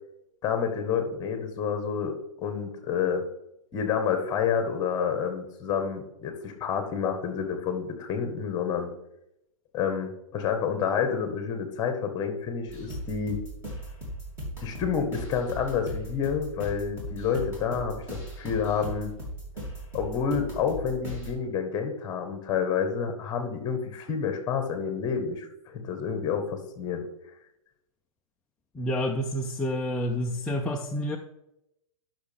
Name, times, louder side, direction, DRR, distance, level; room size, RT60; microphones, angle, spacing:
voice 1, 0.4-3.2 3.7-8.9 9.7-13.4 14.6-19.1 19.9-27.0, left 7 dB, 20° left, 6 dB, 1.4 m, -29 dB
sound 1, 12.7-21.3, right 1 dB, 15° right, 2.8 m, -38 dB
voice 2, 28.8-31.2, left 1 dB, 5° left, -1 dB, 0.3 m, -29 dB
11.0 x 6.1 x 3.6 m, 0.84 s
hypercardioid pair, 150°, 18 cm